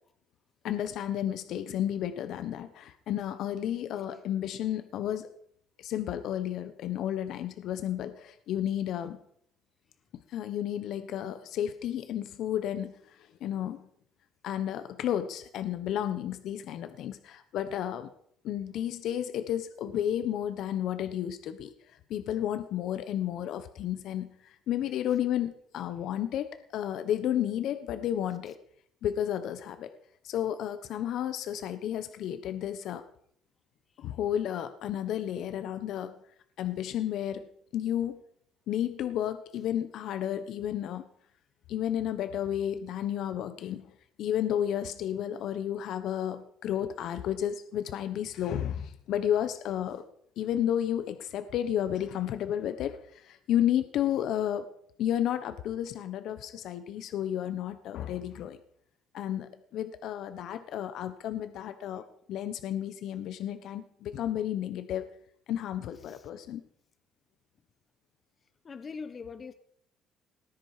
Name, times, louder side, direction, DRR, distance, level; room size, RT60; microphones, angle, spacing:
voice 1, 0.6-5.3 5.8-9.2 10.3-13.8 14.4-18.1 18.4-21.7 22.1-28.5 29.0-29.9 30.2-33.0 34.0-36.1 36.6-37.4 37.7-38.2 38.7-41.1 41.7-43.9 44.2-50.0 50.4-54.6 55.0-58.6 59.1-62.0 62.3-65.1 65.5-66.6, left 10 dB, 70° left, 1.2 m, -32 dB
voice 2, 68.6-69.5, left 5 dB, 35° left, 1.2 m, -41 dB
19.0 x 10.0 x 5.1 m
cardioid pair, 110°, 0 cm